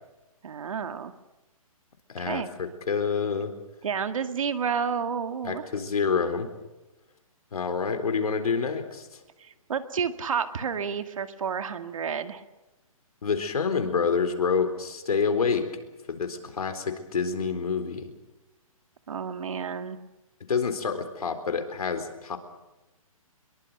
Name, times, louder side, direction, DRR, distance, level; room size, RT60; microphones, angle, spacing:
voice 1, 0.4-1.1 2.2-2.5 3.8-5.7 9.4-12.4 19.1-20.0, right 6 dB, 65° right, 9 dB, 2.2 m, -30 dB
voice 2, 2.1-3.5 5.4-6.5 7.5-9.2 13.2-15.7 16.1-18.1 20.5-22.4, left 5 dB, 85° left, 8 dB, 4.0 m, -27 dB
24.5 x 22.5 x 6.8 m, 1.0 s
hypercardioid pair, 170°, 19 cm